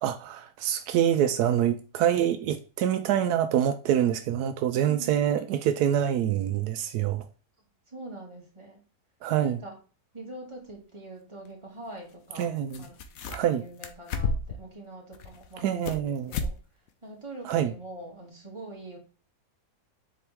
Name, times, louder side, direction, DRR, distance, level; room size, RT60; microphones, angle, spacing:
voice 1, 0.0-7.2 9.2-9.6 12.4-12.8 13.3-13.6 15.6-16.3 17.4-17.7, right 10 dB, 85° right, 1.1 m, -26 dB
voice 2, 7.9-8.8 9.4-9.8 10.1-16.5 17.0-19.0, right 2 dB, 20° right, 2.4 m, -43 dB
sound 1, 10.7-10.8 12.4-12.5 12.7-13.5 13.8-14.6 15.1-16.0 16.3-16.6 16.9-17.0 17.5-17.6, left 3 dB, 70° left, 1.2 m, -32 dB
7.4 x 4.5 x 3.5 m
omnidirectional pair, 1.6 m